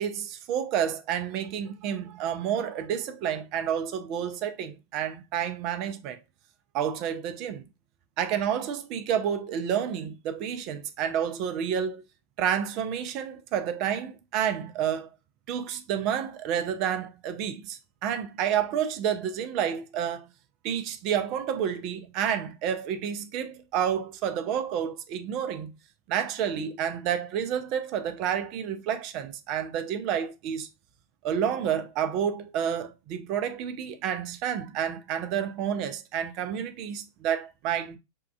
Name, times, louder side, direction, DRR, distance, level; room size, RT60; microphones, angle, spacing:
voice 1, 0.0-6.2 6.7-7.7 8.2-12.0 12.4-15.1 15.5-20.3 20.6-25.8 26.1-30.7 31.2-38.0, right 8 dB, 40° right, 0.4 m, -29 dB
3.5 x 2.3 x 2.3 m
figure-of-eight pair, 90°, 0 cm